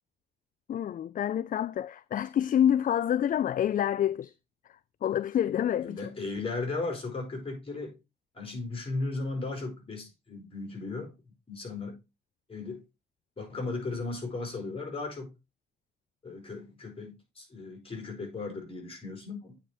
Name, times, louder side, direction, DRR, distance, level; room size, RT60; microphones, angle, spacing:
voice 1, 0.7-4.3 5.0-6.1, left 10 dB, 45° left, 0.4 m, -27 dB
voice 2, 5.8-7.9 8.3-11.1 11.5-12.0 12.5-12.8 13.4-15.3 16.2-19.5, left 3 dB, 30° left, 4.7 m, -36 dB
8.8 x 5.0 x 4.3 m
cardioid pair, 90°, 20 cm